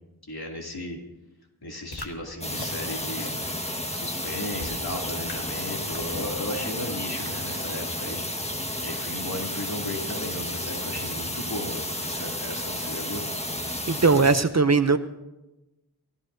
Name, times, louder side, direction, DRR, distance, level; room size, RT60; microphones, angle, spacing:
voice 1, 0.3-1.0 1.6-3.3 3.9-8.2 8.8-13.2, left 1 dB, 70° left, -1 dB, 2.9 m, -35 dB
sound 1, 1.9-2.1 2.6-2.7 3.2-3.3 3.9-4.0 4.6-4.8 5.2-5.3 5.9-6.1 6.6-6.7 7.2-7.3, left 3 dB, 90° left, 1.5 m, -38 dB
sound 2, 2.4-14.4, left 1 dB, 15° left, 1.5 m, -32 dB
voice 2, 13.9-15.0, right 4 dB, 45° right, 10 dB, 0.7 m, -19 dB
30.0 x 14.5 x 2.7 m, 0.99 s
wide cardioid pair, 45°, 39 cm